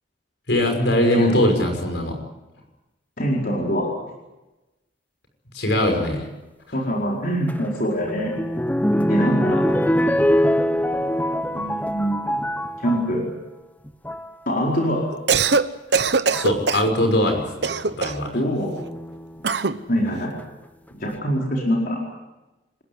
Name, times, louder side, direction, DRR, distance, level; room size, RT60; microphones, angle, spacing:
voice 1, 0.5-2.2 5.5-6.3 16.3-18.3, left 1 dB, 70° left, 5 dB, 6.0 m, -21 dB
voice 2, 3.2-4.1 6.7-8.4 9.1-9.7 11.5-12.4 12.8-13.3 14.5-15.1 18.3-18.7 19.9-20.4 20.9-22.0, equal, 50° left, -2 dB, 4.7 m, -24 dB
sound 1, 7.5-13.1 13.9-14.3 15.5-15.6 16.3-16.7 18.8-19.4 20.1-20.2 20.4-20.5, equal, 10° left, 1.0 m, -23 dB
Cough, 15.1-15.7 15.9-16.9 17.6-18.3 19.4-19.8, right 4 dB, 65° right, 1.0 m, -21 dB
27.0 x 15.5 x 9.5 m, 1.0 s
head